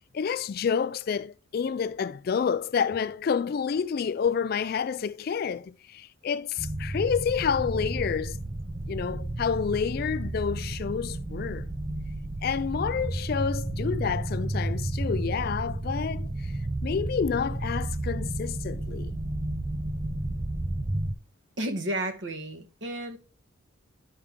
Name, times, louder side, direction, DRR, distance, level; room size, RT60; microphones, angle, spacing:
voice 1, 0.1-8.4 8.9-11.7 12.4-16.5 16.8-19.2, left 6 dB, 45° left, 0.3 m, -29 dB
sound 1, 6.6-21.1, right 1 dB, 20° right, 0.5 m, -32 dB
voice 2, 21.6-23.2, right 1 dB, 60° right, 1.3 m, -32 dB
11.0 x 4.7 x 3.6 m
head